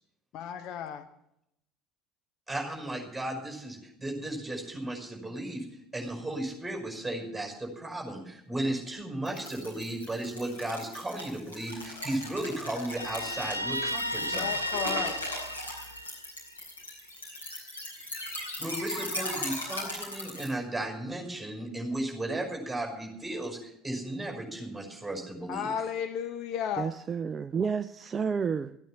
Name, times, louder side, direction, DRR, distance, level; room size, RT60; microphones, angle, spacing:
voice 1, 0.3-1.1 14.2-15.2 25.5-26.9, left 8 dB, 50° left, 9 dB, 0.8 m, -34 dB
voice 2, 2.5-5.7 5.9-14.5 18.6-25.7, right 1 dB, 5° right, 1 dB, 5.5 m, -35 dB
sound 1, 9.2-20.5, left 1 dB, 80° left, 4.3 m, -38 dB
Guitar, 13.0-16.5, equal, 90° right, 0.6 m, -34 dB
voice 3, 26.8-28.8, right 6 dB, 30° right, 12 dB, 0.4 m, -30 dB
15.0 x 9.1 x 7.2 m, 0.79 s
figure-of-eight pair, 65°, 0 cm